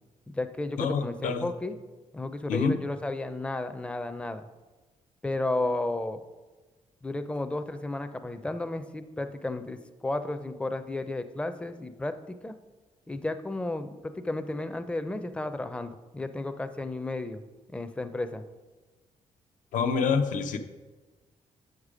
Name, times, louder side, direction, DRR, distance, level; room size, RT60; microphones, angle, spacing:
voice 1, 0.3-1.8 2.1-4.4 5.2-6.2 7.0-12.5 13.1-17.4 17.7-18.4, left 2 dB, 10° left, 9 dB, 0.5 m, -33 dB
voice 2, 0.8-1.5 2.5-2.8 19.7-20.6, left 5 dB, 80° left, 8 dB, 0.7 m, -27 dB
7.8 x 6.6 x 4.9 m, 1.2 s
cardioid pair, 135°, 13 cm